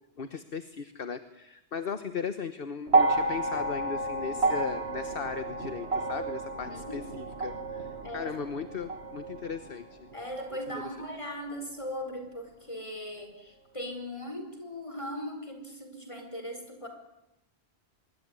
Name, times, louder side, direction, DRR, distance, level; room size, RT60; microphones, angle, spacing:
voice 1, 0.2-10.1, left 6 dB, 60° left, 10 dB, 1.4 m, -37 dB
sound 1, 2.9-11.2 12.3-12.4, right 2 dB, 75° right, 2.1 m, -31 dB
voice 2, 6.6-7.1 8.0-8.4 10.1-16.9, equal, 30° left, 5 dB, 5.1 m, -39 dB
25.0 x 22.0 x 9.6 m, 0.88 s
omnidirectional pair, 1.1 m